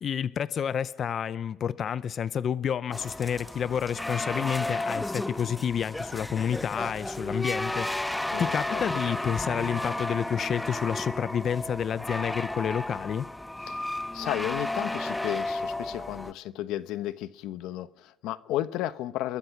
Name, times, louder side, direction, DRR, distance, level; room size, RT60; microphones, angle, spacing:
voice 1, 0.0-8.1 8.4-13.3, left 8 dB, 45° left, 0.7 m, -29 dB
sound 1, 2.9-16.3, left 1 dB, 5° left, 0.7 m, -33 dB
voice 2, 8.3-8.8 13.7-13.8 14.1-19.4, left 13 dB, 80° left, 0.9 m, -33 dB
28.5 x 22.0 x 6.0 m
cardioid pair, 115°, 0 cm